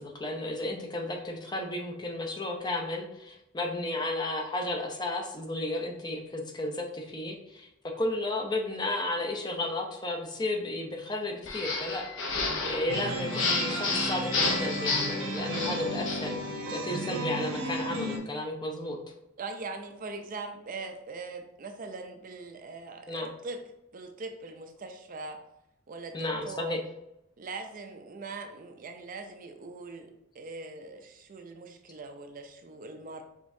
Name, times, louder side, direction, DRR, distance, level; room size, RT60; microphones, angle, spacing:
voice 1, 0.0-7.7 8.0-19.0 23.1-23.3 26.1-26.8, left 2 dB, 20° left, 2 dB, 0.6 m, -33 dB
sound 1, 11.5-16.3, left 3 dB, 60° left, 0.8 m, -31 dB
sound 2, 12.9-18.2, right 1 dB, 80° right, 0.9 m, -34 dB
voice 2, 19.4-23.6 23.9-25.4 25.9-26.2 26.4-26.8 27.4-33.2, right 3 dB, 40° right, 5 dB, 0.4 m, -41 dB
5.1 x 3.5 x 2.7 m, 0.85 s
head